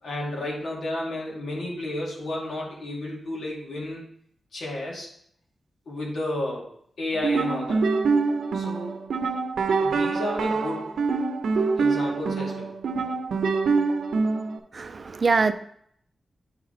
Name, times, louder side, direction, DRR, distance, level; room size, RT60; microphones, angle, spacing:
voice 1, 0.0-4.0 4.5-5.1 5.9-6.7 7.0-7.8 8.5-9.0 9.8-10.9 11.8-13.1, left 1 dB, 70° left, -3 dB, 2.3 m, -32 dB
sound 1, 7.1-14.6, right 4 dB, 90° right, 0.6 m, -25 dB
voice 2, 14.7-15.5, right 4 dB, 45° right, 11 dB, 0.4 m, -23 dB
8.7 x 3.9 x 4.2 m, 0.66 s
wide cardioid pair, 105°, 0 cm